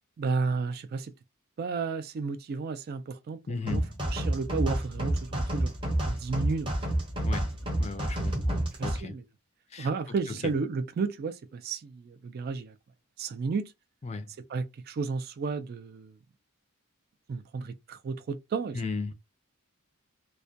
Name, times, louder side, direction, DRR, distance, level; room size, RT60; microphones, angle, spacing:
voice 1, 0.2-1.1 1.6-6.8 8.8-9.2 9.8-12.7 13.2-13.7 14.5-16.2 17.3-18.8, right 4 dB, 45° right, 0.3 m, -33 dB
voice 2, 3.5-4.0 7.2-7.5 7.8-9.1 9.7-9.9 10.3-10.5 14.0-14.3 18.7-19.1, left 4 dB, 30° left, 0.4 m, -35 dB
sound 1, 3.7-9.0, right 1 dB, 25° right, 0.7 m, -29 dB
2.2 x 2.1 x 2.6 m
head